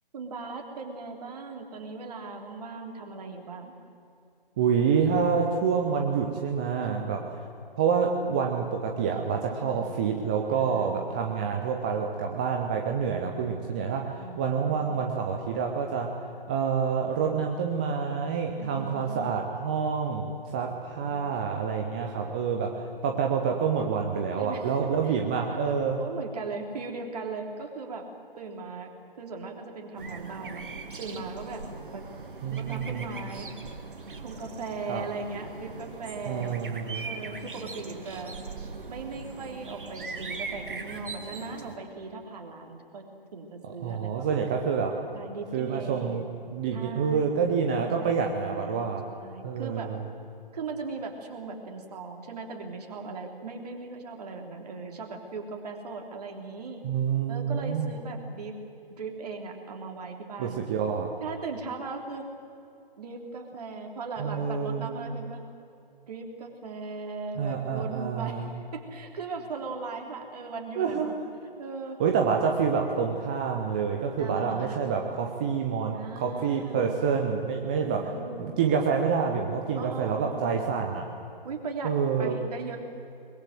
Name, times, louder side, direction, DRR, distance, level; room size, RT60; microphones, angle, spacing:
voice 1, 0.1-3.7 6.8-7.2 9.5-9.9 10.5-11.2 14.2-15.0 18.6-19.3 20.7-21.4 24.4-24.8 25.0-25.1 25.5-28.0 28.4-28.9 29.2-30.6 31.0-31.6 31.9-32.0 32.5-33.5 34.2-36.6 37.0-38.3 38.9-43.0 43.3-44.6 45.1-46.2 46.7-47.3 47.8-49.9 50.5-56.8 57.3-58.5 58.9-60.6 61.2-62.2 63.0-65.4 66.1-71.1 71.6-72.0 74.2-75.0 75.9-76.9 77.8-78.5 79.7-80.6 81.4-81.9 82.2-82.8, right 4 dB, 40° right, 2 dB, 3.4 m, -38 dB
voice 2, 4.6-7.2 7.8-14.1 14.4-16.1 16.5-26.0 32.4-33.1 34.9-35.0 36.3-37.1 43.8-45.0 45.5-49.1 49.4-50.0 56.8-57.9 60.4-61.1 64.2-65.1 67.4-68.5 70.8-71.1 72.0-78.1 78.4-81.0 81.8-82.4, right 6 dB, 10° right, 2 dB, 0.5 m, -27 dB
sound 1, 30.0-41.8, right 4 dB, 60° right, 2.2 m, -40 dB
22.0 x 21.5 x 7.8 m, 2.5 s
figure-of-eight pair, 140°, 29 cm